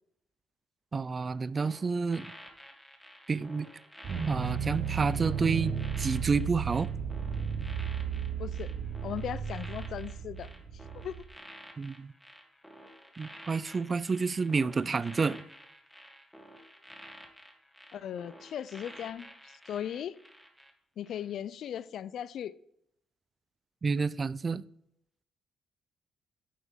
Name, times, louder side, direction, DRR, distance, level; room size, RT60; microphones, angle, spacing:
voice 1, 0.9-2.3 3.3-3.7 4.3-5.7 6.0-6.9 11.8-12.1 13.2-15.4 23.8-24.6, right 4 dB, 35° right, 0.3 m, -29 dB
sound 1, 1.6-20.7 21.0-21.3, equal, ahead, 1.4 m, -51 dB
sound 2, 4.0-11.2, right 7 dB, 55° right, 1.0 m, -34 dB
voice 2, 8.4-8.7 9.0-10.5 11.0-11.2 17.9-20.1 21.0-22.5, left 9 dB, 70° left, 0.4 m, -38 dB
9.5 x 5.8 x 3.7 m
cardioid pair, 90°, 0 cm